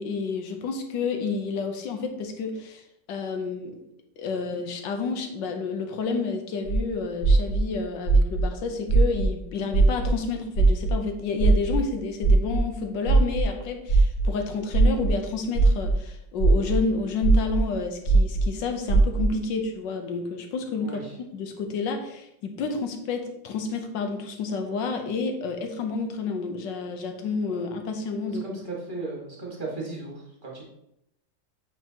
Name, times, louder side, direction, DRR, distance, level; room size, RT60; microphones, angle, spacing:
voice 1, 0.0-2.8 3.1-3.8 4.2-21.0 21.3-28.6, left 4 dB, 75° left, 5 dB, 1.5 m, -30 dB
sound 1, 6.7-6.8 7.2-7.6 8.1-8.4 8.9-9.2 9.7-10.1 10.6-10.9 11.4-11.7 12.2-12.6 13.1-13.4 13.9-14.2 14.7-15.1 15.6-15.9 16.4-16.7 17.2-17.6 18.1-18.4 18.9-19.2, right 4 dB, 50° left, 1.7 m, -20 dB
voice 2, 20.8-21.2 28.4-30.6, right 3 dB, 30° right, -3 dB, 1.7 m, -36 dB
8.0 x 4.5 x 2.9 m, 0.80 s
omnidirectional pair, 2.0 m